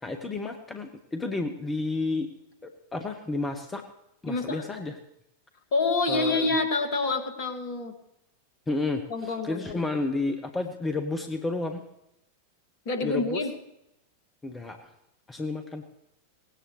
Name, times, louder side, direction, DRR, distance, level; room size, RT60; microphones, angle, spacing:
voice 1, 0.0-2.3 2.6-3.8 4.2-5.0 6.1-6.5 8.7-9.0 9.4-11.8 13.0-13.5 14.4-14.9 15.3-15.8, left 3 dB, 15° left, 6 dB, 1.1 m, -31 dB
voice 2, 4.3-4.7 5.7-7.9 9.1-9.8 12.9-13.5, left 3 dB, 45° left, 7 dB, 2.0 m, -27 dB
18.5 x 17.0 x 3.2 m, 0.85 s
figure-of-eight pair, 90°, 0 cm